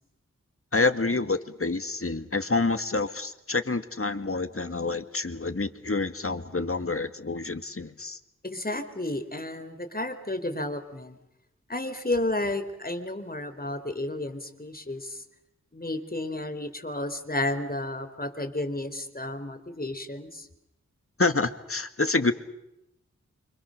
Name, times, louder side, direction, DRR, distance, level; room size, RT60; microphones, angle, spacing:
voice 1, 0.7-8.2 21.2-22.3, left 3 dB, 45° left, 10 dB, 2.2 m, -27 dB
voice 2, 8.4-11.2 11.7-15.2 15.7-20.5, left 1 dB, 30° left, 8 dB, 4.3 m, -32 dB
28.0 x 26.5 x 6.7 m, 0.84 s
cardioid pair, 45°, 31 cm